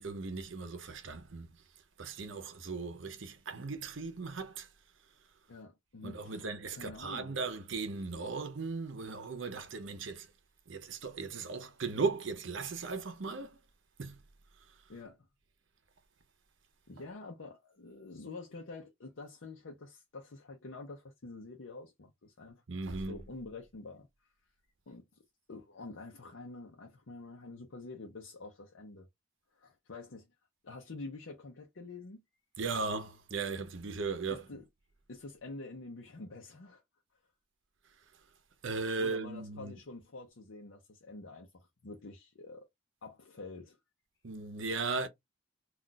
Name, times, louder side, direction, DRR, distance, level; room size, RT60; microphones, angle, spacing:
voice 1, 0.0-1.5 2.0-4.7 6.0-10.3 10.7-13.6 14.0-14.2 22.7-23.2 32.6-34.4 38.6-39.7 44.2-45.1, right 4 dB, 75° right, 0.7 m, -37 dB
voice 2, 5.5-7.3 11.4-11.6 14.9-15.2 16.9-22.6 22.9-24.1 24.9-25.0 25.5-29.1 29.5-30.3 30.6-32.2 34.3-34.6 35.1-36.8 39.0-42.7 43.0-43.8, left 3 dB, 75° left, 0.6 m, -47 dB
2.4 x 2.3 x 3.9 m
head